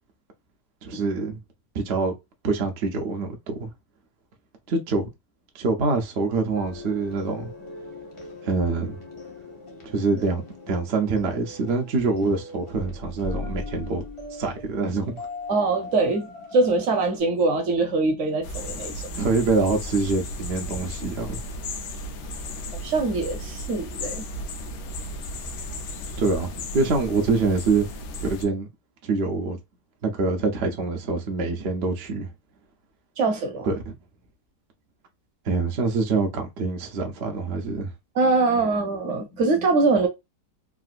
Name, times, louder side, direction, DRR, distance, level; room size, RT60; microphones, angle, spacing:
voice 1, 0.8-1.4 1.7-2.2 2.4-3.7 4.7-5.1 5.5-7.5 8.4-9.0 9.9-10.4 10.7-14.0 14.3-15.3 19.1-21.4 26.2-27.9 28.2-28.7 29.0-29.6 30.0-32.3 33.6-33.9 35.5-37.9, right 3 dB, 75° right, 0.5 m, -25 dB
sound 1, 6.5-17.2, left 2 dB, 40° left, 0.4 m, -39 dB
voice 2, 15.5-19.1 22.8-24.2 33.2-33.7 38.1-40.1, right 3 dB, 55° right, 0.9 m, -23 dB
sound 2, 18.4-28.5, left 1 dB, 70° left, 1.2 m, -35 dB
3.6 x 2.4 x 2.3 m
omnidirectional pair, 1.9 m